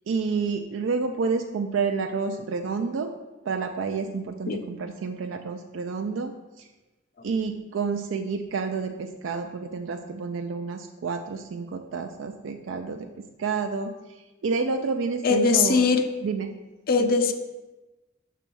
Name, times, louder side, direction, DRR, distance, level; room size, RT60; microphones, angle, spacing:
voice 1, 0.1-3.1 3.4-6.7 7.2-13.1 13.4-15.8 16.2-16.5 17.0-17.1, right 5 dB, 85° right, 5 dB, 0.4 m, -29 dB
voice 2, 15.2-16.1 16.9-17.3, left 5 dB, 50° left, 7 dB, 0.5 m, -21 dB
6.1 x 3.4 x 5.9 m, 1.1 s
head